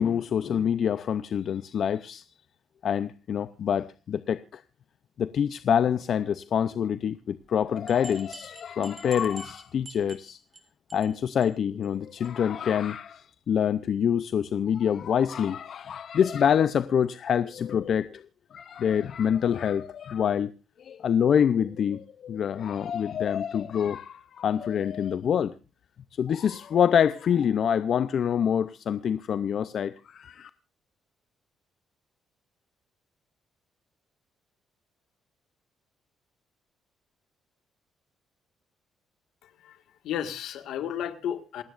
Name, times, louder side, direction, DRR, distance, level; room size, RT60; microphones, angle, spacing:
voice 1, 0.0-2.2 2.8-4.4 5.2-10.4 10.9-18.2 18.5-20.5 20.9-25.5 26.2-30.5, left 8 dB, 60° left, 0.6 m, -26 dB
sound 1, 7.9-10.6 10.9-11.1 11.4-11.5 11.8-11.9 12.2-12.3, right 3 dB, 30° right, 3.5 m, -46 dB
voice 2, 39.4-41.6, left 10 dB, 80° left, 1.8 m, -33 dB
28.0 x 9.3 x 2.5 m
cardioid pair, 90°, 0 cm